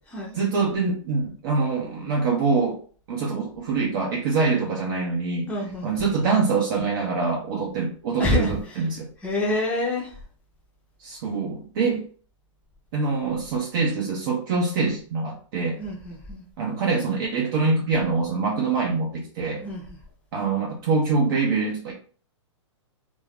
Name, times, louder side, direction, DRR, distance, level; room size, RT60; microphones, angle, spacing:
voice 1, 0.3-2.8 3.1-5.5 5.8-9.1 11.0-12.1 12.9-15.8 16.6-19.6 20.3-21.9, right 4 dB, 45° right, -2 dB, 0.6 m, -24 dB
voice 2, 5.5-5.9 7.5-7.6 8.2-8.8 9.2-10.2 15.8-16.4 19.6-19.8, left 1 dB, 5° left, -3 dB, 0.6 m, -27 dB
2.5 x 2.2 x 3.5 m, 0.43 s
hypercardioid pair, 145°, 16 cm